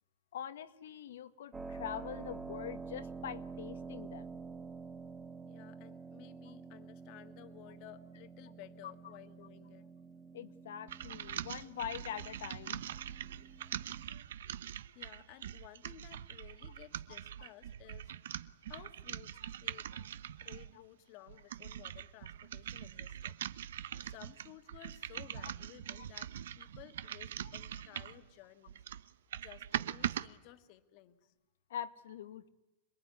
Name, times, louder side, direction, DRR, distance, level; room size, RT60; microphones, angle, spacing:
voice 1, 0.3-4.4 8.8-8.9 10.3-12.9 19.9-20.0 25.4-25.5 27.4-27.5 31.7-32.5, left 10 dB, 80° left, 11 dB, 1.6 m, -44 dB
Keyboard (musical), 1.5-14.0, right 4 dB, 10° right, 1.1 m, -48 dB
voice 2, 5.4-9.9 13.5-14.2 14.9-18.1 18.7-19.9 20.4-23.3 24.0-28.8 29.4-31.3, left 14 dB, 35° left, 9 dB, 1.8 m, -56 dB
sound 1, 10.9-20.7 21.3-28.2 28.7-30.3, right 10 dB, 80° right, 1.0 m, -42 dB
27.0 x 21.5 x 9.7 m, 1.0 s
supercardioid pair, 170°, 0 cm